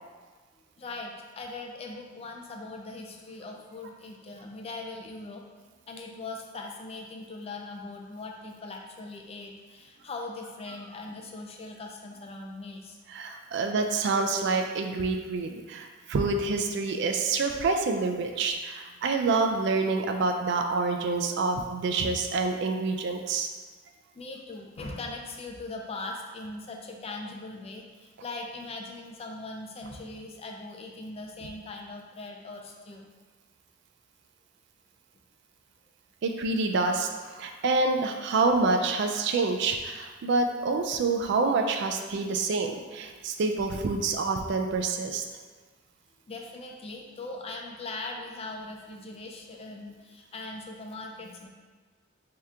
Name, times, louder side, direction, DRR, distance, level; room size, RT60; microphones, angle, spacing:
voice 1, 0.8-5.4 5.9-13.0 24.2-33.1 46.3-51.5, left 2 dB, 30° left, 1 dB, 0.4 m, -40 dB
voice 2, 13.1-23.5 36.2-45.2, right 3 dB, 60° right, 5 dB, 0.4 m, -27 dB
3.6 x 2.8 x 3.3 m, 1.4 s
head